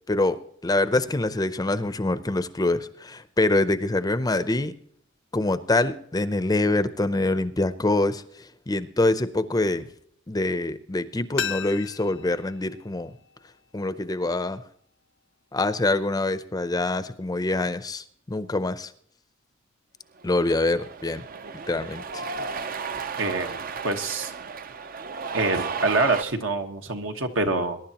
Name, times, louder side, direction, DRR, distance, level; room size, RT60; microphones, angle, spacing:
voice 1, 0.1-4.7 5.3-8.2 8.7-9.9 10.3-13.1 13.7-14.6 15.5-18.9 20.2-21.2 21.7-22.2, left 2 dB, 20° left, 13 dB, 0.6 m, -25 dB
sound 1, 11.4-14.2 14.4-14.5, left 8 dB, 65° left, 0.5 m, -36 dB
Cheering, 20.2-26.2, right 5 dB, 45° right, 0.6 m, -34 dB
voice 2, 23.2-23.6 23.8-24.3 25.3-27.8, right 3 dB, 75° right, 5 dB, 1.4 m, -25 dB
22.0 x 11.0 x 2.9 m, 0.63 s
head